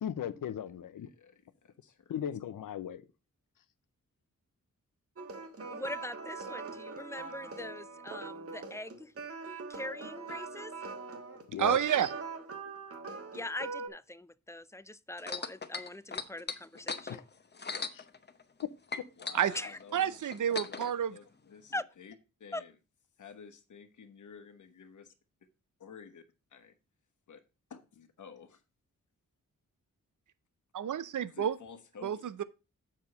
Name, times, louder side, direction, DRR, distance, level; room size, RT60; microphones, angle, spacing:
voice 1, 0.0-1.1 2.1-3.0 11.5-11.8 17.1-17.2 17.9-18.0, left 9 dB, 80° left, 0.7 m, -37 dB
voice 2, 1.0-2.2 19.2-20.8 21.1-22.1 22.4-22.8 23.2-25.1 25.8-26.2 26.5-26.7 27.3-27.4 27.7-28.6 31.3-32.2, left 6 dB, 65° left, 1.1 m, -51 dB
sound 1, 5.2-13.9, right 4 dB, 45° right, 1.4 m, -42 dB
voice 3, 5.7-9.1 9.7-10.7 13.3-17.2 19.5-19.8 21.7-21.8 22.5-22.6, left 1 dB, 10° left, 0.4 m, -42 dB
voice 4, 11.6-12.1 19.3-19.5 19.9-21.1 30.7-31.5 32.0-32.4, right 9 dB, 70° right, 0.6 m, -29 dB
sound 2, 15.2-18.6 18.9-20.9 21.7-21.8, left 4 dB, 30° left, 0.8 m, -39 dB
7.2 x 4.8 x 5.2 m
wide cardioid pair, 90°, 33 cm